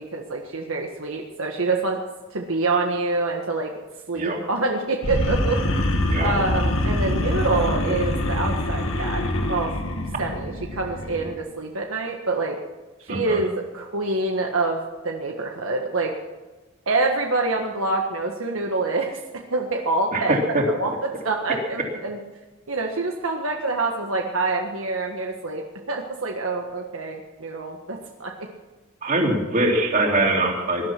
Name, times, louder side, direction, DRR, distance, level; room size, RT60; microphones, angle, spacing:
voice 1, 0.0-2.0 2.3-3.7 4.1-5.8 6.2-9.2 9.5-9.7 10.2-12.6 13.0-16.1 16.9-20.4 20.8-22.2 22.7-28.5, right 3 dB, 75° right, 1 dB, 1.6 m, -26 dB
sound 1, 5.0-11.3, left 1 dB, 70° left, 2.2 m, -25 dB
voice 2, 13.1-13.4 20.1-20.6 29.0-30.8, right 2 dB, 40° right, 0 dB, 3.3 m, -22 dB
19.5 x 11.5 x 6.0 m, 1.2 s
head